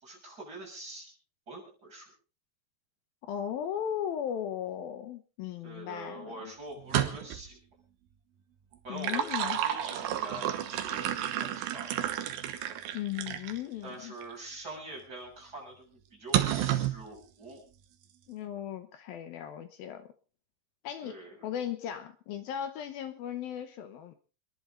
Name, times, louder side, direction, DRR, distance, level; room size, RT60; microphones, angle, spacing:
voice 1, 0.0-1.1 1.5-2.1 5.6-7.6 8.8-12.2 13.8-15.9 16.1-17.6 21.0-21.4, right 2 dB, 20° right, -2 dB, 7.1 m, -44 dB
voice 2, 3.2-6.5 8.9-9.6 12.9-14.2 18.3-20.1 20.8-24.2, left 10 dB, 70° left, 9 dB, 2.4 m, -37 dB
sound 1, 6.8-7.5 8.7-13.6 14.2-14.3 16.3-17.0, right 11 dB, 70° right, 2.6 m, -31 dB
28.0 x 11.0 x 3.7 m, 0.34 s
omnidirectional pair, 5.1 m